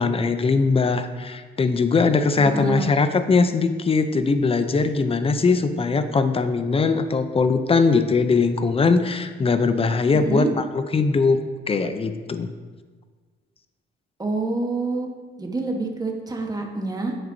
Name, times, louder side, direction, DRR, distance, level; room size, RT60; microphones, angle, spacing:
voice 1, 0.0-10.5 10.9-11.4 11.7-12.5, left 4 dB, 30° left, 10 dB, 0.6 m, -20 dB
voice 2, 2.4-2.9 10.1-10.5 14.2-15.1 15.4-17.1, right 3 dB, 20° right, 1 dB, 1.3 m, -27 dB
9.3 x 7.7 x 2.8 m, 1.5 s
cardioid pair, 90°, 20 cm